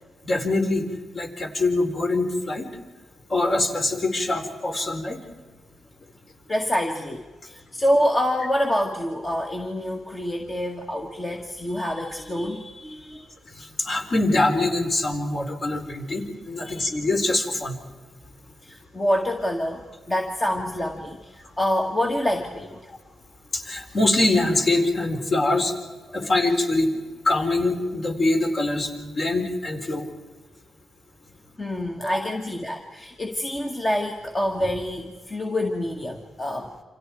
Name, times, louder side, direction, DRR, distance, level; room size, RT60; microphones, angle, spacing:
voice 1, 0.2-0.9 1.1-2.7 3.3-5.2 13.5-17.8 22.9-23.0 23.5-25.7 26.1-30.1, left 2 dB, 40° left, 2 dB, 4.2 m, -24 dB
voice 2, 6.5-13.3 16.6-16.8 18.6-22.8 26.2-26.3 31.6-36.7, equal, 20° left, 1 dB, 1.9 m, -26 dB
29.0 x 27.0 x 4.7 m, 1.3 s
cardioid pair, 125°, 0 cm